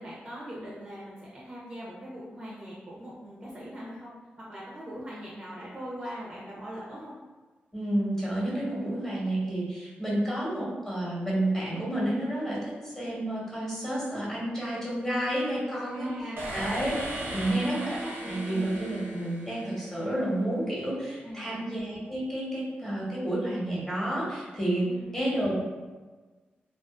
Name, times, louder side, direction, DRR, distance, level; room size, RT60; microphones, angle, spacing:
voice 1, 0.0-7.1 15.9-18.0 18.2-18.7 21.2-21.7 24.8-25.2, equal, 25° right, -6 dB, 0.5 m, -41 dB
voice 2, 7.7-16.9 17.3-18.0 18.2-24.9 25.1-25.5, right 1 dB, 10° left, -7 dB, 1.0 m, -30 dB
sound 1, 16.4-20.2, right 1 dB, 80° right, 0.6 m, -37 dB
2.4 x 2.4 x 2.3 m, 1.3 s
cardioid pair, 90°, 4 cm